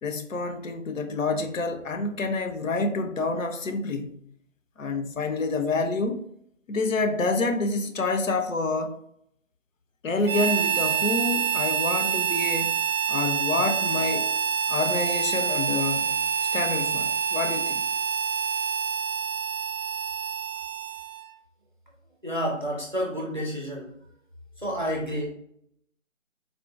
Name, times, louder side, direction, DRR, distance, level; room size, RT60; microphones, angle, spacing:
voice 1, 0.0-4.2 4.8-6.2 6.7-9.0 10.0-12.7 13.1-14.3 14.7-16.2 16.5-17.8, left 3 dB, 75° left, 0.5 m, -28 dB
Harmonica, 10.2-21.3, right 7 dB, 85° right, 0.5 m, -27 dB
voice 2, 22.2-23.9 24.6-25.3, equal, 40° right, 0.6 m, -29 dB
3.6 x 2.2 x 2.3 m
figure-of-eight pair, 175°, 39 cm